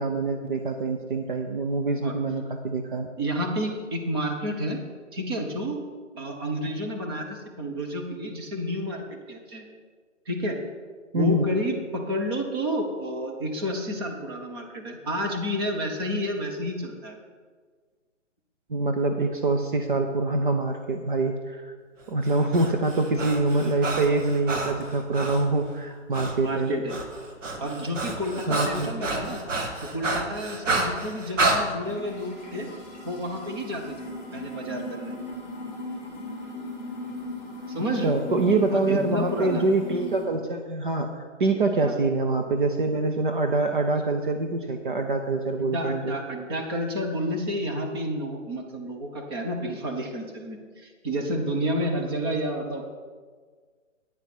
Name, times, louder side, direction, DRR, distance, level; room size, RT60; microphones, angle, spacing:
voice 1, 0.0-3.1 11.1-11.5 18.7-21.7 22.1-26.7 28.3-29.0 38.0-46.2, right 2 dB, 40° right, 5 dB, 0.8 m, -25 dB
voice 2, 3.2-4.8 5.1-5.8 6.2-9.6 10.3-10.6 11.1-17.2 26.4-27.0 27.6-29.4 29.8-32.7 33.0-33.9 34.3-35.1 37.7-38.2 38.7-39.6 41.8-41.9 45.6-52.9, equal, 20° right, 2 dB, 1.0 m, -30 dB
Breathing, 22.3-25.5 26.1-26.4 26.7-31.6, right 2 dB, 75° right, 2.1 m, -29 dB
sound 1, 31.8-40.3, left 2 dB, 5° left, 2.6 m, -37 dB
9.7 x 9.1 x 6.1 m, 1.5 s
hypercardioid pair, 165°, 38 cm